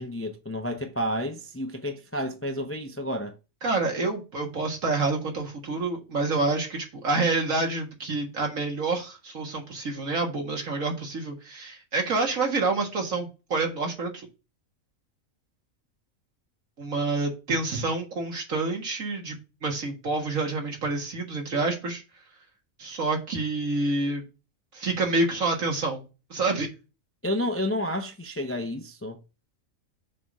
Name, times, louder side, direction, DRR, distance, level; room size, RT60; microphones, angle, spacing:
voice 1, 0.0-3.4 27.2-29.2, left 1 dB, 20° left, 0.3 m, -30 dB
voice 2, 3.6-14.3 16.8-22.0 22.8-24.3 24.7-26.0 26.3-26.7, right 3 dB, 75° right, 2.1 m, -28 dB
6.6 x 3.6 x 5.4 m
omnidirectional pair, 1.4 m